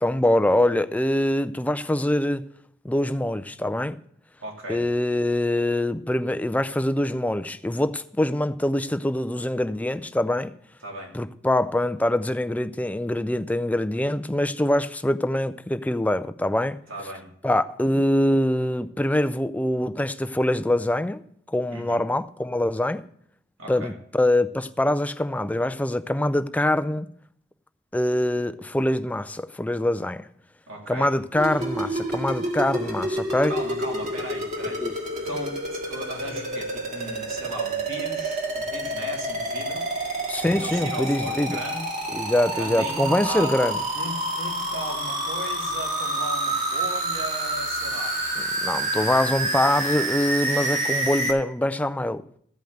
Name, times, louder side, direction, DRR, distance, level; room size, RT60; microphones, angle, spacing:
voice 1, 0.0-2.5 2.8-4.0 4.7-10.5 11.1-16.8 17.4-23.0 23.7-27.1 27.9-30.3 30.9-33.5 34.8-34.9 40.3-41.6 42.1-43.8 48.6-52.2, left 1 dB, 5° left, 0.4 m, -24 dB
voice 2, 4.4-4.8 10.8-11.1 16.9-17.3 21.7-22.0 23.6-23.9 30.7-31.2 33.5-34.8 35.2-39.9 40.5-41.8 42.5-43.5 43.9-48.2, right 1 dB, 80° right, 3.0 m, -36 dB
Edm Strontium Sweep with reverb, 31.3-51.3, right 1 dB, 35° right, 2.0 m, -28 dB
14.5 x 5.3 x 7.8 m
head